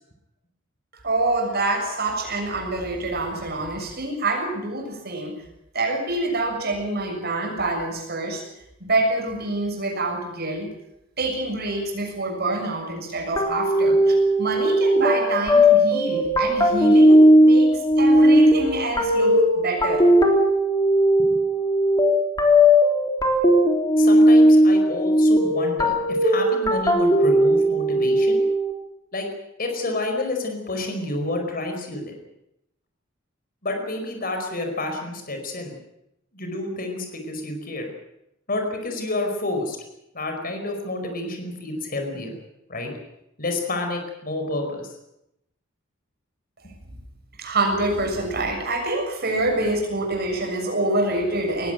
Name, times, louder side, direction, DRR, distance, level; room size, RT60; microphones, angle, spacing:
voice 1, 1.0-5.4 5.7-8.4 8.8-10.7 11.2-20.1 47.4-51.7, right 2 dB, 55° right, 2 dB, 6.8 m, -26 dB
sound 1, 13.4-28.7, equal, 20° left, 3.5 m, -17 dB
voice 2, 24.0-28.4 29.1-29.3 29.6-32.1 33.6-35.7 36.3-37.9 38.5-39.8 40.1-42.3 42.7-42.9 43.4-44.9, left 2 dB, 45° left, 4 dB, 4.9 m, -29 dB
20.0 x 16.5 x 9.1 m, 0.85 s
head